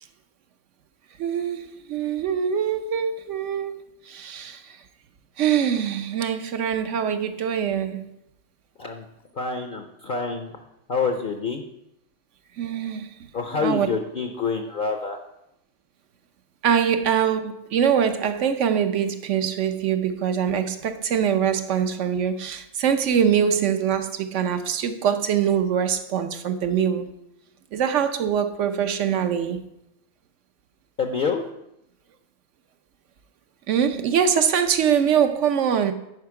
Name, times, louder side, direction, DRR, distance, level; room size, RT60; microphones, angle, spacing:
voice 1, 1.2-3.7 4.1-4.6 5.4-8.1 12.6-13.1 13.5-13.9 16.6-27.1 27.7-29.6 33.7-35.9, right 8 dB, 65° right, 1.0 m, -23 dB
voice 2, 9.4-10.5 10.9-11.6 13.3-15.2 31.0-31.4, left 5 dB, 50° left, 0.7 m, -27 dB
9.5 x 5.6 x 4.7 m
omnidirectional pair, 1.4 m